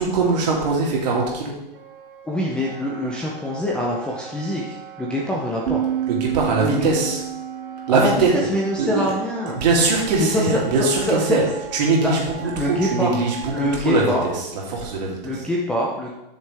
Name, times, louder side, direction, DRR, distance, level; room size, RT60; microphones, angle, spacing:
voice 1, 0.0-1.6 6.1-7.2 7.9-8.5 8.8-9.1 9.5-15.4, right 3 dB, 45° right, -2 dB, 2.9 m, -22 dB
Wind instrument woodwind instrument, 1.7-13.8, right 8 dB, 70° right, 1.2 m, -40 dB
voice 2, 2.3-5.8 6.6-6.8 7.9-8.1 8.5-9.6 10.2-10.6 11.1-11.2 12.0-12.1 12.6-13.1 13.5-14.2 15.2-16.1, left 1 dB, 5° left, -3 dB, 0.6 m, -24 dB
sound 1, 5.7-9.5, right 11 dB, 90° right, 0.6 m, -29 dB
12.5 x 6.6 x 3.5 m, 0.96 s
hypercardioid pair, 150°, 29 cm